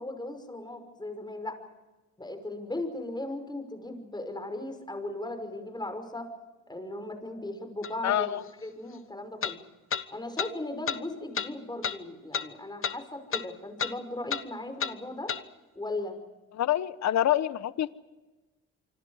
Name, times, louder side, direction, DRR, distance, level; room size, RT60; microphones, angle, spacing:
voice 1, 0.0-1.6 2.2-6.3 6.7-9.6 10.1-15.3 15.8-16.2, left 2 dB, 15° left, 7 dB, 5.7 m, -37 dB
sound 1, 7.8-7.9 9.4-9.6 9.9-10.0 10.4-10.5 10.9-11.0 11.3-11.5 11.8-12.0 12.3-12.5 12.8-13.0 13.3-13.5 13.8-13.9 14.3-14.4 14.8-14.9 15.3-15.4, left 7 dB, 45° left, 1.2 m, -31 dB
voice 2, 8.0-8.4 16.5-17.9, left 12 dB, 65° left, 15 dB, 1.1 m, -26 dB
27.0 x 25.0 x 5.0 m, 1.2 s
cardioid pair, 90°, 30 cm